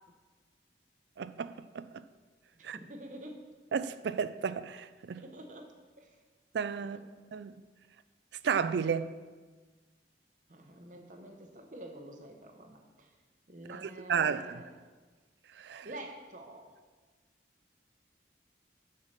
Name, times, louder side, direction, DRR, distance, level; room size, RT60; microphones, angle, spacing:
voice 1, 1.2-2.0 2.6-2.8 3.7-5.2 6.5-7.0 7.3-7.5 8.4-9.2 13.7-14.6 15.6-15.9, right 6 dB, 75° right, 0.4 m, -33 dB
voice 2, 2.5-3.4 5.2-5.7 6.0-6.2 6.9-7.0 10.5-13.1 13.5-14.8 15.8-16.7, right 1 dB, 45° right, 0.8 m, -48 dB
7.2 x 5.6 x 6.6 m
head